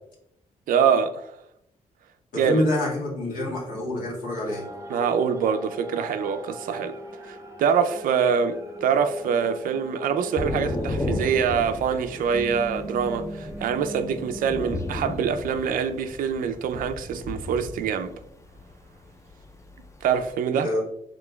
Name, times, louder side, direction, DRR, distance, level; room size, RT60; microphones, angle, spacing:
voice 1, 0.7-1.4 2.4-2.6 4.9-7.0 7.2-18.1 20.0-20.7, right 7 dB, 80° right, 0.4 m, -25 dB
voice 2, 2.3-4.7 20.5-20.8, left 1 dB, 75° left, 1.6 m, -27 dB
sound 1, 4.4-15.1, right 1 dB, 20° right, 0.6 m, -39 dB
Thunder / Rain, 10.4-20.3, left 2 dB, 20° left, 0.5 m, -34 dB
5.1 x 3.6 x 2.2 m
cardioid pair, 90°, 14 cm